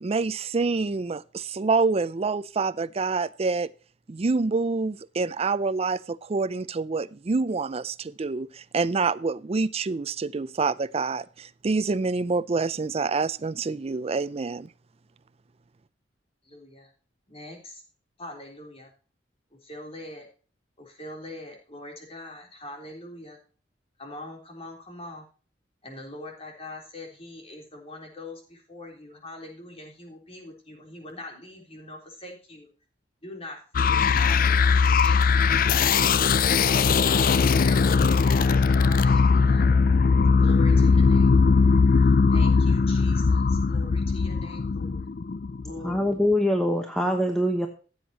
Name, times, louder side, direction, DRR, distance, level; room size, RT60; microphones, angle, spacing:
voice 1, 0.0-3.7 4.1-14.7, right 4 dB, 35° right, 14 dB, 0.4 m, -27 dB
voice 2, 16.4-16.9 17.3-17.8 18.2-18.9 19.5-20.3 20.8-23.4 24.0-25.3 25.8-32.7 33.2-39.6 40.4-41.7 42.0-45.1 45.6-46.1, left 2 dB, 35° left, 2 dB, 3.6 m, -42 dB
sound 1, 33.7-46.1, left 5 dB, 50° left, 0.5 m, -20 dB
voice 3, 45.8-47.7, left 1 dB, 5° left, 3 dB, 1.1 m, -23 dB
15.0 x 8.0 x 2.9 m, 0.37 s
head